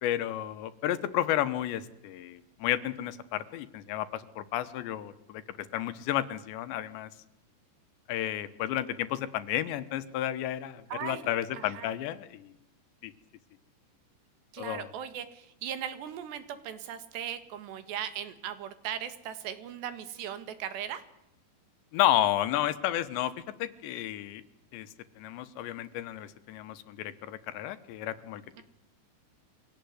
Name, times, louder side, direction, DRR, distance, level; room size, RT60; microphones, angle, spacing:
voice 1, 0.0-7.1 8.1-12.5 13.0-13.1 14.6-14.9 21.9-23.3 23.6-24.4 24.7-24.9 25.2-28.6, left 12 dB, 85° left, 14 dB, 3.4 m, -32 dB
voice 2, 10.9-11.3 11.5-11.9 14.5-21.0 28.6-28.7, right 9 dB, 75° right, 11 dB, 3.9 m, -38 dB
24.5 x 17.5 x 9.6 m, 0.85 s
omnidirectional pair, 5.1 m